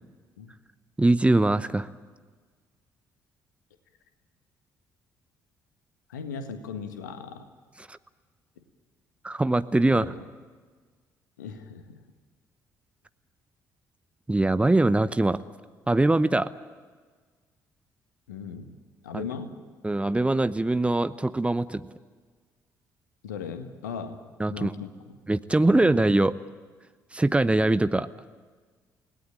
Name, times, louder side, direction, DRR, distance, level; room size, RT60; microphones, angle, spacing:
voice 1, 1.0-1.9 7.9-8.0 9.2-10.1 14.3-15.4 15.9-16.5 19.1-19.2 19.8-21.9 24.4-24.7 25.3-26.3 27.1-28.1, right 2 dB, 10° right, 14 dB, 0.8 m, -22 dB
voice 2, 6.1-7.5 8.6-8.7 9.9-10.2 11.4-12.0 18.3-18.8 19.0-19.6 23.2-25.2 25.6-26.0, left 6 dB, 75° left, 8 dB, 1.6 m, -38 dB
30.0 x 18.0 x 8.9 m, 1.5 s
figure-of-eight pair, 45°, 10 cm